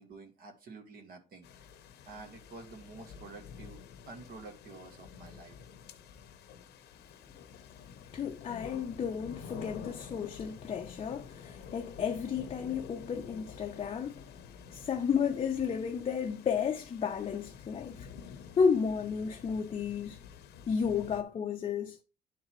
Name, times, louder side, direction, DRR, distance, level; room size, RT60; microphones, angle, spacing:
voice 1, 0.0-1.6 2.0-5.6, right 3 dB, 60° right, 1.5 m, -49 dB
sound 1, 1.4-21.2, left 7 dB, 75° left, 0.8 m, -49 dB
voice 2, 8.1-14.3 14.7-18.1 18.6-20.2 20.7-22.0, left 6 dB, 35° left, 0.5 m, -32 dB
10.5 x 3.9 x 3.0 m
cardioid pair, 110°, 17 cm